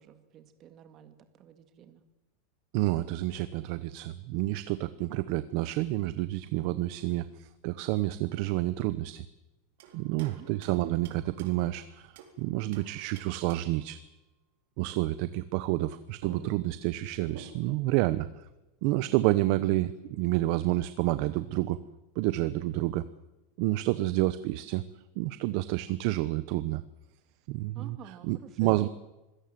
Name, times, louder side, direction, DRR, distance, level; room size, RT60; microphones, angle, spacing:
voice 1, 0.0-2.0 9.9-10.5 27.7-28.9, right 9 dB, 30° right, 9 dB, 1.9 m, -50 dB
voice 2, 2.7-9.2 9.9-12.1 12.4-14.0 14.8-18.3 18.8-21.8 22.2-23.0 23.6-24.8 25.2-26.8 27.5-28.0 28.2-28.9, right 17 dB, 50° right, 14 dB, 0.9 m, -29 dB
sound 1, 9.8-12.4 12.7-13.9 15.8-15.9 16.2-17.8, right 6 dB, 70° right, 4.2 m, -50 dB
26.0 x 17.0 x 7.7 m, 1.0 s
supercardioid pair, 160°, 0 cm